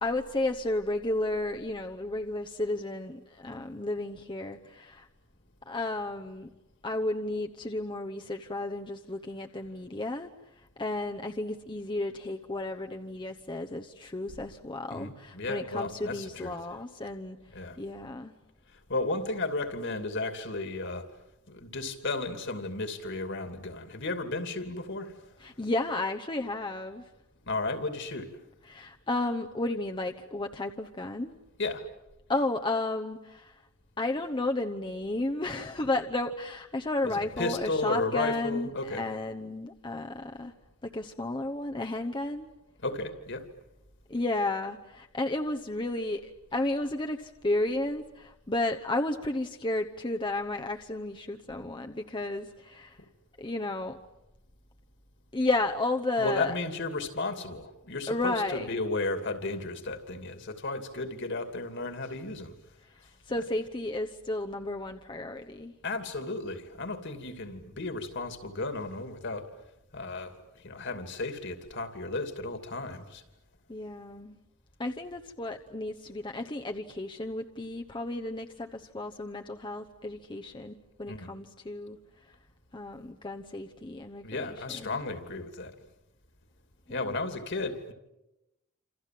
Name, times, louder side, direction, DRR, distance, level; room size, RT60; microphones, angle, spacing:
voice 1, 0.0-5.1 5.7-6.5 6.8-10.3 10.8-17.4 17.8-18.3 25.4-27.0 28.7-31.3 32.3-33.5 34.0-40.5 40.8-42.5 44.1-53.0 53.4-54.0 55.3-56.5 58.1-58.7 63.3-65.7 73.7-74.4 74.8-82.0 82.7-85.0, left 2 dB, 25° left, 1.0 m, -33 dB
voice 2, 14.9-16.6 17.5-17.8 18.9-21.1 21.5-25.2 27.4-28.4 31.6-31.9 37.0-39.0 42.8-43.5 56.2-62.5 65.8-69.5 69.9-73.2 81.1-81.3 84.2-85.7 86.9-87.9, left 2 dB, 60° left, 2.8 m, -34 dB
28.0 x 28.0 x 7.7 m
head